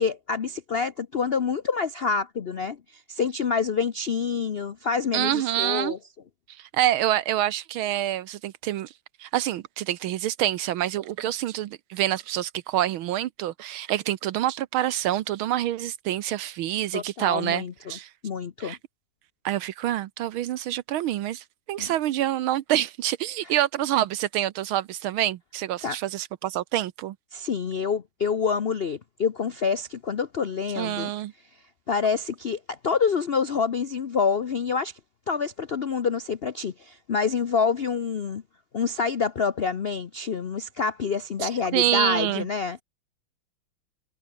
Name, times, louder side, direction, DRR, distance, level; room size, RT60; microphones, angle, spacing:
voice 1, 0.0-6.0 16.9-18.8 21.8-21.9 23.4-23.5 25.8-26.0 27.3-31.1 31.9-34.9 35.3-38.4 38.7-42.8, left 5 dB, 75° left, 0.5 m, -27 dB
voice 2, 5.1-5.9 6.6-8.9 9.2-17.6 17.9-18.1 18.6-18.8 19.4-27.1 30.8-31.3 41.4-42.5, right 13 dB, 80° right, 1.6 m, -27 dB
omnidirectional pair, 2.3 m